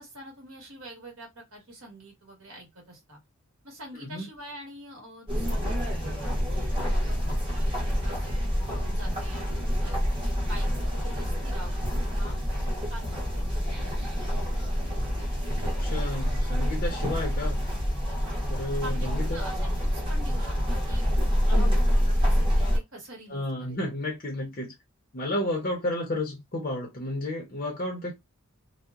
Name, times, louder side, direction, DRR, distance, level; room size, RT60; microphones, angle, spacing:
voice 1, 0.0-3.2 3.6-10.0 10.5-13.9 14.2-15.2 18.2-18.4 18.8-21.1 21.5-23.8 25.3-25.5, right 1 dB, 65° right, 1.3 m, -46 dB
sound 1, 5.3-22.8, equal, 20° right, 1.0 m, -27 dB
voice 2, 15.8-17.6 18.5-19.4 21.5-21.7 23.3-24.7 25.1-28.1, left 1 dB, 40° left, 0.6 m, -32 dB
2.7 x 2.0 x 2.3 m
head